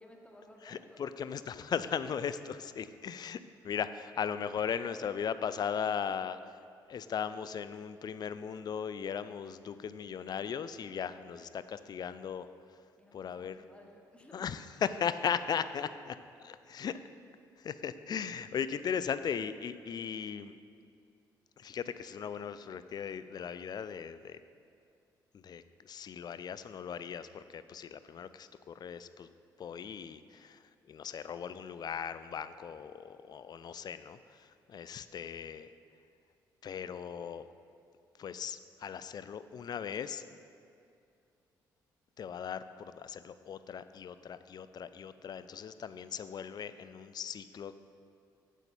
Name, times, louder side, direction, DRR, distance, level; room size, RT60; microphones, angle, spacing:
voice 1, 0.0-1.0 13.0-14.5, left 1 dB, 10° left, 1 dB, 1.4 m, -56 dB
voice 2, 0.6-3.4 3.6-6.4 6.9-12.5 13.1-13.6 14.3-17.0 17.6-20.5 21.6-24.4 25.3-29.3 29.6-30.6 30.9-35.7 36.6-37.5 38.2-40.2 42.2-47.8, left 7 dB, 40° left, 13 dB, 0.4 m, -38 dB
7.7 x 7.0 x 4.4 m, 2.4 s
figure-of-eight pair, 45°, 11 cm